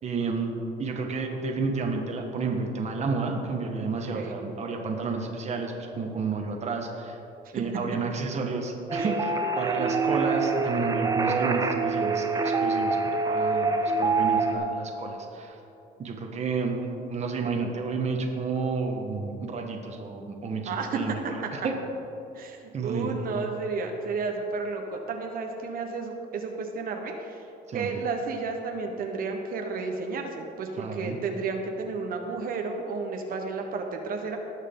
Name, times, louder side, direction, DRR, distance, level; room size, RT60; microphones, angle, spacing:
voice 1, 0.0-0.5 0.8-7.2 7.5-13.0 13.2-13.7 14.0-15.6 16.0-21.7 22.7-23.2 27.7-27.9 30.8-31.2, right 4 dB, 40° right, 2 dB, 1.4 m, -31 dB
sound 1, 8.9-14.6, right 4 dB, 20° right, 0.8 m, -25 dB
voice 2, 20.6-21.0 22.3-27.5 27.7-34.4, right 4 dB, 60° right, 3 dB, 1.1 m, -32 dB
18.5 x 6.4 x 3.8 m, 2.9 s
cardioid pair, 110°, 17 cm